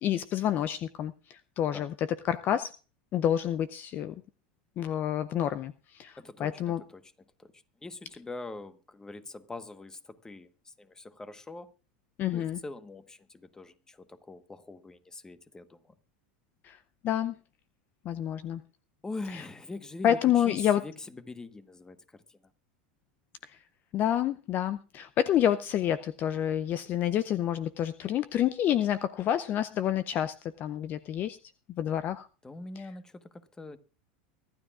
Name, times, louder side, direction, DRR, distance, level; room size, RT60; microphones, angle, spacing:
voice 1, 0.0-2.7 3.1-4.2 4.8-6.8 12.2-12.6 16.6-16.8 17.0-17.4 18.0-18.6 20.0-20.8 23.5-23.6 23.9-31.4 31.8-32.3, left 10 dB, 40° left, 0.5 m, -28 dB
voice 2, 6.2-7.1 7.4-11.7 12.3-15.9 19.0-22.4 32.4-33.8, left 3 dB, 15° left, 1.2 m, -43 dB
24.0 x 12.5 x 2.4 m
hypercardioid pair, 95°, 5 cm